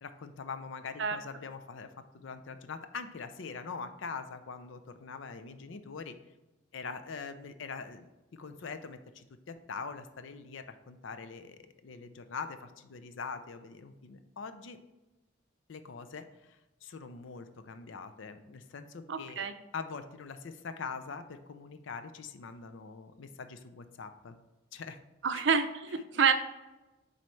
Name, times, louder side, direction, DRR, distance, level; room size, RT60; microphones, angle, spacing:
voice 1, 0.0-6.2 6.7-14.8 15.7-19.5 19.7-24.4 24.7-25.0 25.3-25.4, left 5 dB, 70° left, 10 dB, 0.5 m, -43 dB
voice 2, 19.1-19.5 25.2-26.3, right 6 dB, 60° right, 9 dB, 0.5 m, -28 dB
7.5 x 4.1 x 3.2 m, 1.1 s
head